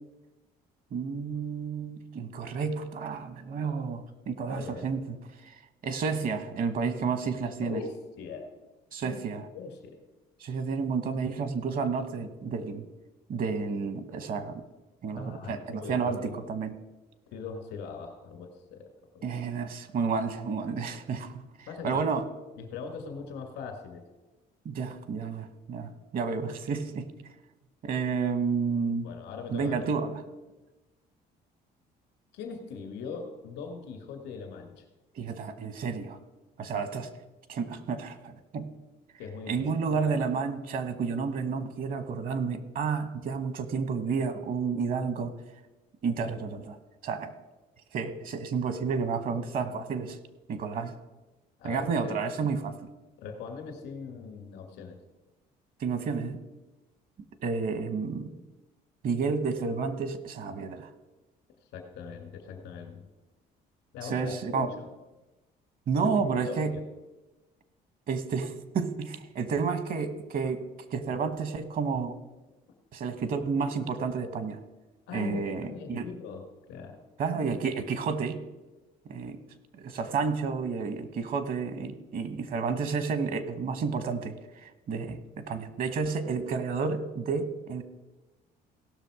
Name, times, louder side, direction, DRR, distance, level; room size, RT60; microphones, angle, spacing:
voice 1, 0.9-5.2 5.4-5.6 5.8-7.8 8.9-9.5 10.4-12.9 13.3-14.6 15.0-16.7 19.2-21.4 21.8-22.2 24.6-27.1 27.8-29.1 29.5-30.2 35.1-36.2 36.6-37.1 37.5-38.7 39.5-45.3 46.0-46.8 47.0-47.3 47.9-50.2 50.5-50.9 51.6-52.9 55.8-56.4 57.4-58.3 59.0-60.9 64.0-64.7 65.9-66.8 68.1-70.6 70.9-72.2 72.9-74.6 75.1-76.1 77.2-78.4 79.0-79.4 79.7-84.3 84.6-87.8, right 5 dB, 55° right, 11 dB, 1.2 m, -31 dB
voice 2, 4.5-4.9 7.6-8.5 9.0-9.2 9.5-10.0 15.2-16.4 17.3-18.9 19.1-19.2 21.7-22.0 22.6-24.0 29.0-29.9 32.3-34.8 39.2-40.1 51.6-52.2 53.2-55.0 61.7-63.0 63.9-64.7 66.0-66.2 66.5-66.8 75.1-76.4 76.7-77.0, left 5 dB, 90° left, 4 dB, 2.2 m, -40 dB
17.0 x 6.2 x 5.0 m, 1.1 s
cardioid pair, 110°, 17 cm